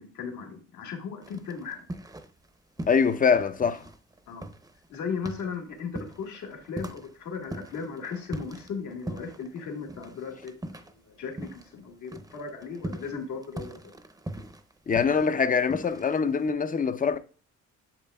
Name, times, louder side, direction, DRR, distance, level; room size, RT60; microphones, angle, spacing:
voice 1, 0.0-1.9 4.3-4.5 4.9-14.0, left 5 dB, 70° left, 1.7 m, -37 dB
sound 1, 1.2-2.5 2.8-11.8 12.0-16.5, right 1 dB, 10° right, 0.7 m, -41 dB
voice 2, 2.9-3.8 14.9-17.2, left 6 dB, 30° left, 0.6 m, -24 dB
8.7 x 6.6 x 2.3 m
cardioid pair, 90°, 30 cm